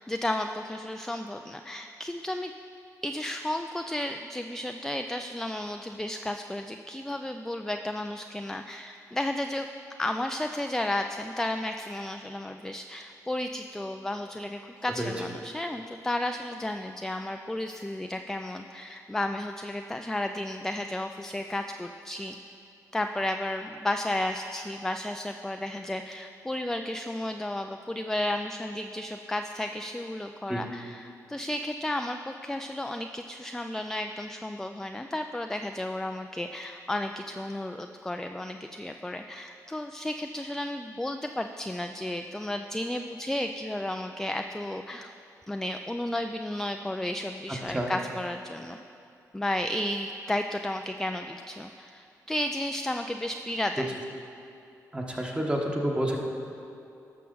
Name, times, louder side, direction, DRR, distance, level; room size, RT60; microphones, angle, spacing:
voice 1, 0.0-2.5 3.0-9.7 10.0-22.4 22.9-45.1 45.5-48.8 49.3-54.0, left 1 dB, 5° left, 6 dB, 0.3 m, -33 dB
voice 2, 54.9-56.2, right 1 dB, 15° right, 0 dB, 1.3 m, -29 dB
11.5 x 6.3 x 3.9 m, 2.7 s
cardioid pair, 70°, 7 cm